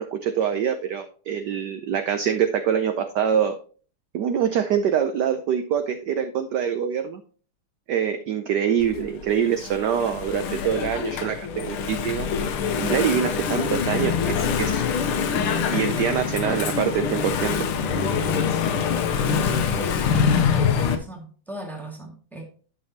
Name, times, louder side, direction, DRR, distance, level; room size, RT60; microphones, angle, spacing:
voice 1, 0.0-3.6 4.1-7.2 7.9-12.3 12.8-14.8 15.7-17.6, right 8 dB, 70° right, 1.0 m, -24 dB
Engine / Mechanisms, 8.8-21.0, left 6 dB, 85° left, 1.7 m, -25 dB
voice 2, 19.4-22.4, right 1 dB, ahead, 1.5 m, -39 dB
10.5 x 6.2 x 2.8 m
omnidirectional pair, 2.4 m